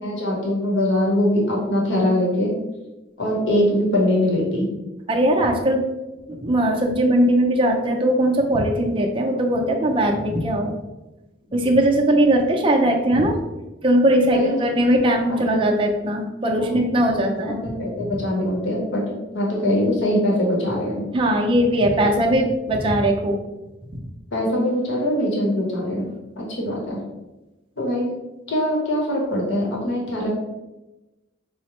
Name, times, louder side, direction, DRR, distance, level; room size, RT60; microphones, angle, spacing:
voice 1, 0.0-2.5 3.2-4.7 14.3-14.5 15.3-15.5 16.6-16.8 17.6-19.0 19.3-21.1 24.3-26.1 26.4-27.0 27.8-28.1 28.5-30.3, left 1 dB, 75° left, -3 dB, 0.9 m, -22 dB
voice 2, 5.1-5.8 6.3-10.8 11.5-13.4 13.8-17.7 18.0-18.1 21.1-23.4 23.9-24.0, right 1 dB, 30° right, 1 dB, 0.4 m, -20 dB
4.9 x 2.0 x 2.9 m, 1.0 s
head